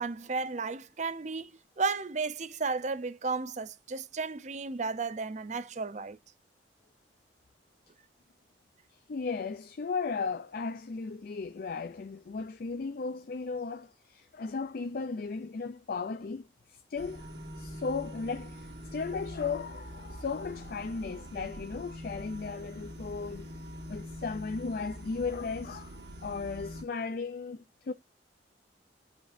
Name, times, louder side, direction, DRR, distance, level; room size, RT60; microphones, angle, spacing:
voice 1, 0.0-1.5 1.8-6.2, right 4 dB, 40° right, 0.6 m, -33 dB
voice 2, 9.1-17.3 17.6-23.5 23.9-27.9, left 4 dB, 55° left, 0.4 m, -36 dB
sound 1, 17.0-26.8, equal, 75° right, 1.5 m, -44 dB
8.6 x 5.1 x 2.6 m
head